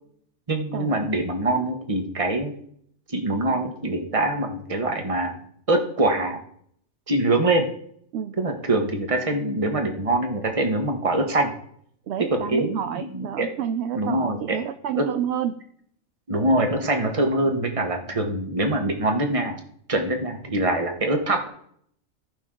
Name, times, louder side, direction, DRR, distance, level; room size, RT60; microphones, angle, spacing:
voice 1, 0.5-2.5 3.1-5.4 5.7-6.4 7.1-7.7 8.4-11.5 12.3-12.7 13.0-13.5 13.9-14.6 14.9-15.0 16.3-19.6 19.9-21.5, right 2 dB, 25° right, 4 dB, 1.1 m, -24 dB
voice 2, 12.1-15.6, right 9 dB, 65° right, 8 dB, 0.7 m, -29 dB
15.0 x 5.5 x 3.7 m, 0.66 s
omnidirectional pair, 1.4 m